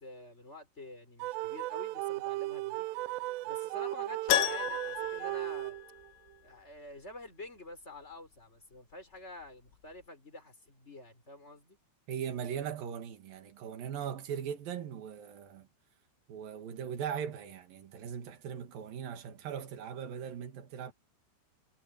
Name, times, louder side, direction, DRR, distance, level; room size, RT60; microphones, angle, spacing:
voice 1, 0.0-2.9 3.5-5.8 6.4-11.8, left 2 dB, 15° left, 5.5 m, -48 dB
sound 1, 1.2-6.1, right 19 dB, 85° right, 2.4 m, -36 dB
Keyboard (musical), 4.3-6.4 6.6-6.7 9.4-9.5 9.7-9.8, left 14 dB, 85° left, 3.5 m, -32 dB
voice 2, 12.1-15.7 16.3-20.9, right 8 dB, 55° right, 3.4 m, -39 dB
omnidirectional pair, 5.4 m